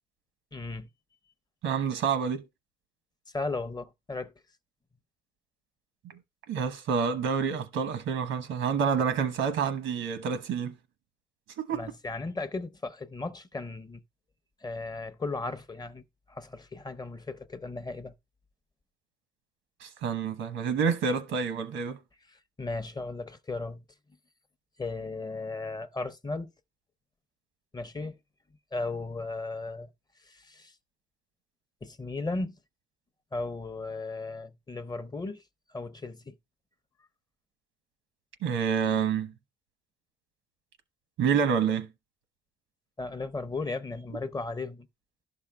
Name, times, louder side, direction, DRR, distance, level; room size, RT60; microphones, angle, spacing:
voice 1, 0.5-0.9 3.3-4.3 11.7-14.0 14.6-16.0 16.3-18.1 22.6-23.8 24.8-26.5 27.7-28.2 28.7-29.9 30.3-30.7 31.8-32.6 33.3-35.4 35.7-36.3 43.0-44.9, left 3 dB, 20° left, 0.5 m, -36 dB
voice 2, 1.6-2.4 6.0-6.1 6.5-10.7 11.6-11.9 19.8-22.0 38.4-39.3 41.2-41.9, right 6 dB, 90° right, 1.0 m, -28 dB
11.5 x 5.9 x 2.3 m
cardioid pair, 90°, 20 cm